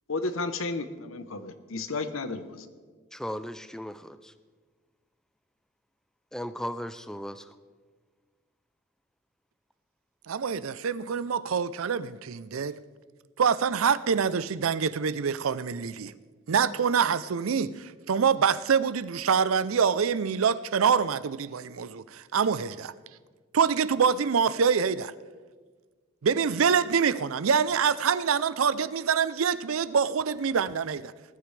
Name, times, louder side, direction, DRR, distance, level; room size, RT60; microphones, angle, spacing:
voice 1, 0.1-2.7, left 3 dB, 85° left, 0.9 m, -33 dB
voice 2, 3.1-4.3 6.3-7.5, equal, 5° left, 0.4 m, -36 dB
voice 3, 10.3-12.8 13.4-16.1 16.5-22.9 23.5-25.1 26.2-31.1, right 6 dB, 90° right, 0.5 m, -25 dB
19.5 x 12.5 x 3.3 m
head